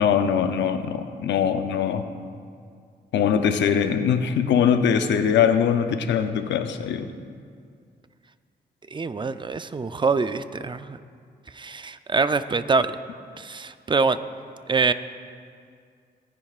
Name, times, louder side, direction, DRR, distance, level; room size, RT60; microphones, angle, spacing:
voice 1, 0.0-2.0 3.1-7.1, left 7 dB, 85° left, 8 dB, 0.6 m, -22 dB
voice 2, 8.9-11.0 11.5-12.9 13.4-14.2 14.7-14.9, right 4 dB, 25° right, 12 dB, 0.5 m, -24 dB
18.5 x 10.0 x 2.5 m, 2.2 s
cardioid pair, 65°, 18 cm